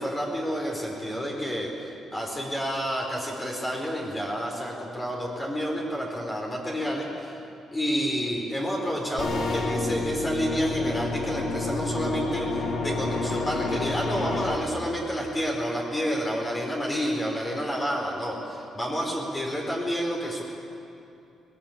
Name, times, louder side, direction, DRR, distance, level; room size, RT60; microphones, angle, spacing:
voice 1, 0.0-7.4 7.7-20.4, equal, 20° left, -2 dB, 4.7 m, -29 dB
sound 1, 9.2-14.6, left 2 dB, 60° left, 3.1 m, -29 dB
20.5 x 20.5 x 8.9 m, 2.7 s
cardioid pair, 90°, 0 cm